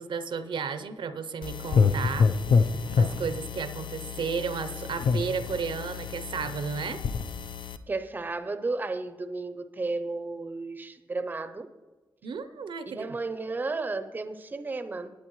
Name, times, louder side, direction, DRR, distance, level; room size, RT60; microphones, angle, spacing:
voice 1, 0.0-2.3 2.6-2.7 2.9-7.0 12.2-13.2, right 5 dB, 75° right, 12 dB, 0.7 m, -33 dB
sound 1, 1.4-7.8, left 5 dB, 75° left, 0.6 m, -27 dB
voice 2, 7.9-11.7 12.9-15.1, right 3 dB, 20° right, 10 dB, 0.5 m, -33 dB
19.0 x 8.3 x 3.1 m, 1.2 s
wide cardioid pair, 165°, 8 cm